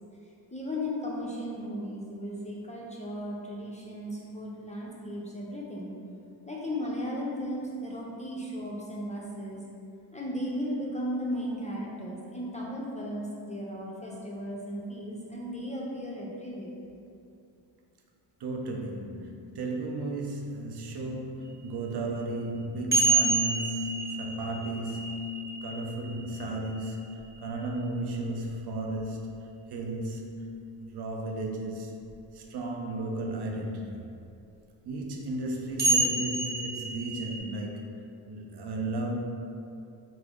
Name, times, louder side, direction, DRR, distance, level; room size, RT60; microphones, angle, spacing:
voice 1, 0.5-5.9 6.5-9.6 10.1-16.8, equal, 15° left, -4 dB, 0.4 m, -35 dB
voice 2, 18.4-30.4 30.8-31.9 32.3-34.0 34.8-37.8 38.2-39.1, right 1 dB, 55° right, 1 dB, 0.5 m, -34 dB
sound 1, 22.9-27.2 29.0-29.1 32.1-32.2 35.8-37.4, right 3 dB, 20° right, 0.8 m, -28 dB
3.3 x 2.0 x 3.6 m, 2.5 s
cardioid pair, 60°, 49 cm